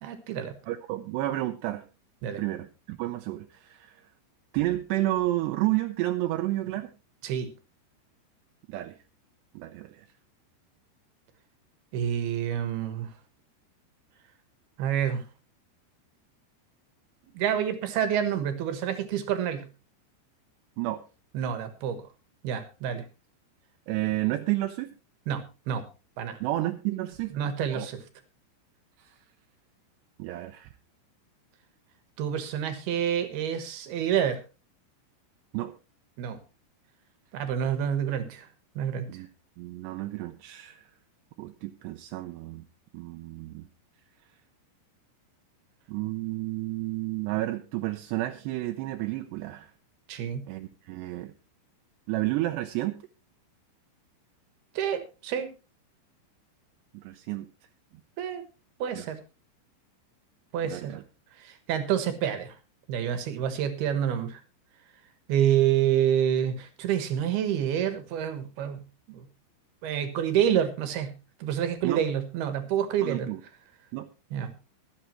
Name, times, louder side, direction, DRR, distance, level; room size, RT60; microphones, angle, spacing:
voice 1, 0.0-0.5 2.2-2.4 7.2-7.5 11.9-13.1 14.8-15.2 17.3-19.6 21.3-22.0 22.4-23.0 25.3-25.8 26.2-26.4 27.3-28.0 32.2-34.4 36.2-36.4 37.3-38.5 38.8-39.1 50.1-50.4 54.8-55.5 58.2-58.4 58.8-59.2 60.5-61.0 61.4-62.6 62.9-64.4 65.3-68.8 69.1-69.3 69.8-71.1 71.4-73.3 74.3-74.5, right 9 dB, 65° right, 9 dB, 2.8 m, -28 dB
voice 2, 0.7-1.9 2.4-4.0 4.5-6.9 8.7-9.0 9.5-10.1 20.8-21.0 23.9-24.9 26.4-27.4 27.7-27.9 29.0-29.2 30.2-30.7 35.5-35.8 39.1-39.3 39.6-40.9 41.4-42.7 42.9-43.7 45.9-49.7 50.5-51.3 52.1-53.0 56.9-57.5 59.0-59.1 60.6-61.0 71.8-72.0 73.0-73.4 73.9-74.1, right 16 dB, 80° right, 7 dB, 2.4 m, -31 dB
23.5 x 8.2 x 3.1 m, 0.31 s
omnidirectional pair, 5.6 m